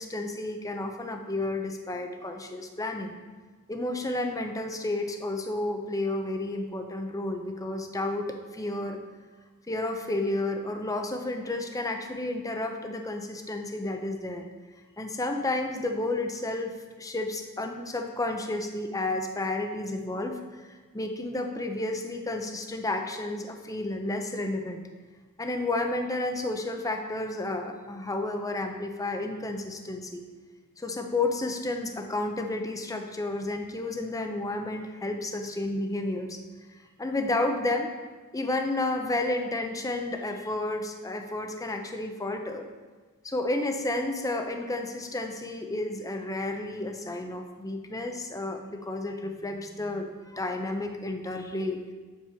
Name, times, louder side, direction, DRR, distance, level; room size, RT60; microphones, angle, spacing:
voice 1, 0.0-3.1 3.7-9.0 9.7-14.5 15.0-16.7 17.0-20.4 20.9-24.8 25.4-30.2 30.8-36.4 37.0-37.9 38.3-42.7 43.2-50.1 50.3-51.8, left 2 dB, 15° left, 5 dB, 0.7 m, -31 dB
7.5 x 7.3 x 4.5 m, 1.4 s
head